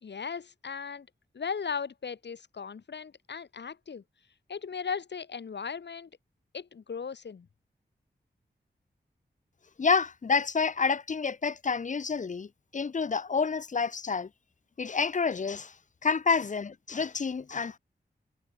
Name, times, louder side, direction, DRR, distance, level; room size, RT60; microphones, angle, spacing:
voice 1, 0.0-1.1 1.3-4.0 4.5-6.1 6.5-7.5, left 6 dB, 75° left, 1.8 m, -37 dB
voice 2, 9.8-12.5 12.7-14.3 14.8-15.7 16.0-17.8, left 5 dB, 45° left, 0.6 m, -28 dB
wide cardioid pair, 115°, 18 cm